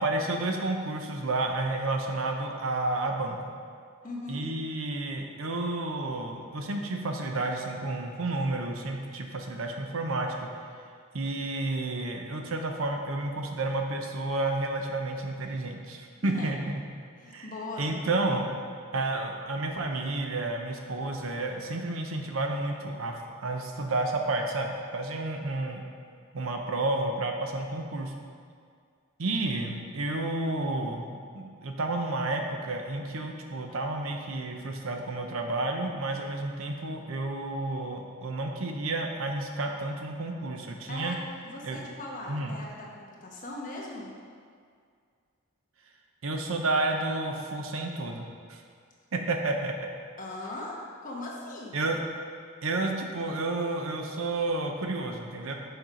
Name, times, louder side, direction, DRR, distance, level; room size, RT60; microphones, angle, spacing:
voice 1, 0.0-3.5 4.3-10.5 11.1-16.8 17.3-17.5 17.8-18.6 18.9-25.9 26.3-28.1 29.2-41.2 41.6-41.8 42.3-42.6 46.2-48.6 49.1-49.9 51.7-52.0 52.6-55.5, right 2 dB, 80° right, 3 dB, 0.7 m, -31 dB
voice 2, 4.0-4.4 16.2-16.5 17.2-17.9 40.9-41.2 41.4-42.9 43.2-44.1 50.2-51.8, left 2 dB, 40° left, -3 dB, 1.1 m, -39 dB
6.5 x 4.4 x 5.0 m, 2.2 s
head